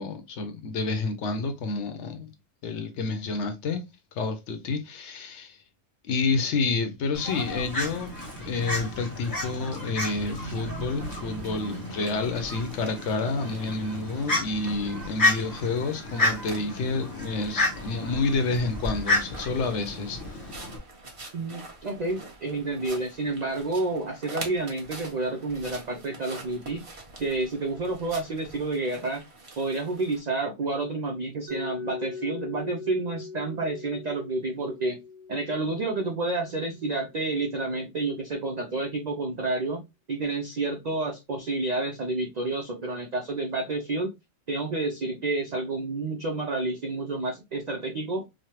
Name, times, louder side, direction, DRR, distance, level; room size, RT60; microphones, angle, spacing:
voice 1, 0.0-2.3 2.6-3.8 4.1-5.6 6.0-8.1 8.5-20.2, left 3 dB, 70° left, 0.9 m, -29 dB
Fowl, 7.1-20.8, left 2 dB, 20° left, 0.8 m, -31 dB
sound 1, 10.9-30.2, right 2 dB, 30° right, 0.6 m, -46 dB
voice 2, 21.3-26.9 27.2-29.2 29.6-35.0 35.3-39.8 40.1-44.1 44.5-48.3, right 2 dB, 80° right, 0.3 m, -29 dB
Mallet percussion, 31.5-37.3, left 5 dB, 60° right, 0.9 m, -41 dB
3.2 x 2.2 x 2.8 m
omnidirectional pair, 1.3 m